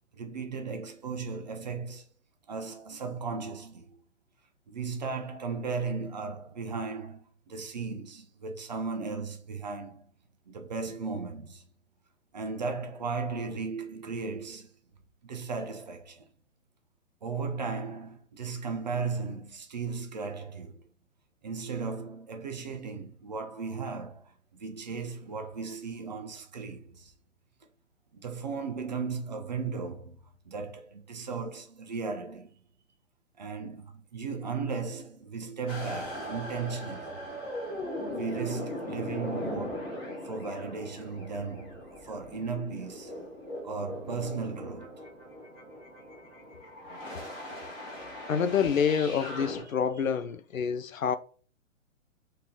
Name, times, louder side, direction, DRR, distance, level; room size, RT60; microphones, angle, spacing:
voice 1, 0.1-2.0 2.5-3.9 4.7-10.0 10.5-11.6 12.3-14.7 15.2-16.3 17.2-20.8 21.4-27.1 28.1-30.2 30.5-32.5 33.4-37.2 38.1-39.9 40.2-41.8 42.0-43.3 43.6-45.0, right 4 dB, 35° right, 0.5 m, -36 dB
sound 1, 35.7-49.6, left 1 dB, 15° left, 1.1 m, -39 dB
voice 2, 48.3-51.2, left 7 dB, 80° left, 0.5 m, -27 dB
3.2 x 2.8 x 3.6 m
figure-of-eight pair, 125°, 40 cm